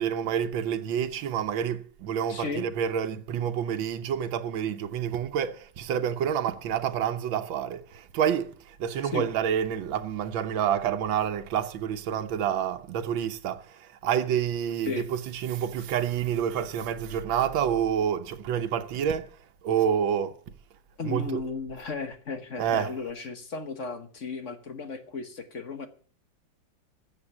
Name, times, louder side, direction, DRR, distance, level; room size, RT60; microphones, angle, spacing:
voice 1, 0.0-8.5 8.8-13.6 14.0-19.3 19.6-20.3 21.0-21.4 22.6-22.9, right 9 dB, 90° right, 1.6 m, -28 dB
voice 2, 2.3-2.6 9.1-9.2 14.8-15.1 21.0-25.9, left 4 dB, 45° left, 1.4 m, -35 dB
14.0 x 7.8 x 7.0 m
omnidirectional pair, 2.1 m